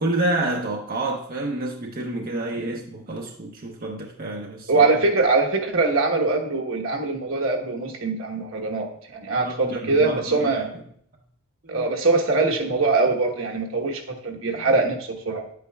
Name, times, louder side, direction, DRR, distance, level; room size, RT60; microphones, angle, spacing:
voice 1, 0.0-4.9 9.4-10.6 11.6-11.8 14.5-14.6, right 2 dB, 45° right, 0.7 m, -29 dB
voice 2, 4.7-10.7 11.7-15.5, right 3 dB, 75° right, 1.2 m, -23 dB
9.4 x 8.4 x 2.3 m
head